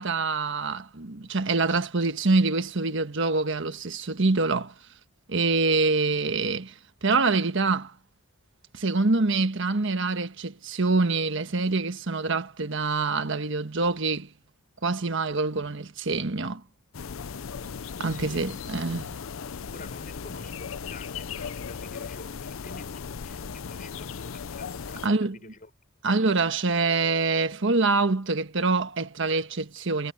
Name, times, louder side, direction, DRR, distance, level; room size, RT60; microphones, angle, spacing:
voice 1, 0.0-4.7 5.3-6.7 7.0-7.9 8.7-14.3 14.8-16.6 18.0-19.1 25.0-25.4 26.0-30.1, right 3 dB, 65° right, 1.4 m, -25 dB
sound 1, 16.9-25.1, left 6 dB, 70° left, 0.6 m, -37 dB
voice 2, 18.0-18.9 19.7-25.7, left 3 dB, 40° left, 5.7 m, -48 dB
head